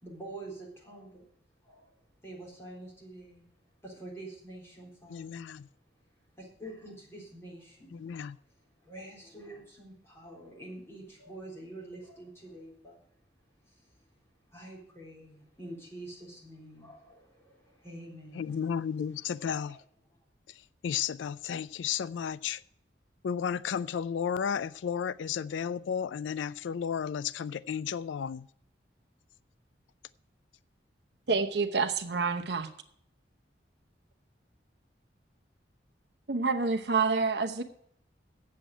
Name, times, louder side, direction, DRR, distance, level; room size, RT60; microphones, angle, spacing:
voice 1, 0.0-1.2 1.6-1.9 2.2-3.5 3.8-5.3 6.4-8.0 8.8-13.0 13.7-13.8 14.5-18.6 19.4-19.8, right 1 dB, 15° left, 3.7 m, -46 dB
voice 2, 5.1-5.7 7.9-8.4 18.3-19.8 20.5-22.6 23.2-28.5, left 7 dB, 85° left, 0.4 m, -33 dB
voice 3, 31.3-32.7 36.3-37.6, right 4 dB, 60° right, 0.9 m, -28 dB
8.2 x 7.7 x 8.8 m
head